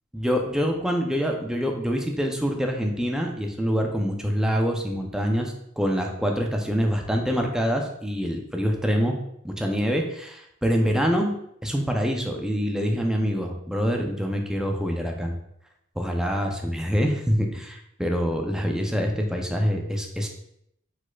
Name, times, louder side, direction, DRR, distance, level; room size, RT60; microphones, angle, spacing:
voice 1, 0.1-9.1 9.4-11.3 11.6-15.3 16.0-20.3, equal, 5° right, 2 dB, 0.4 m, -25 dB
4.9 x 4.0 x 2.3 m, 0.74 s
head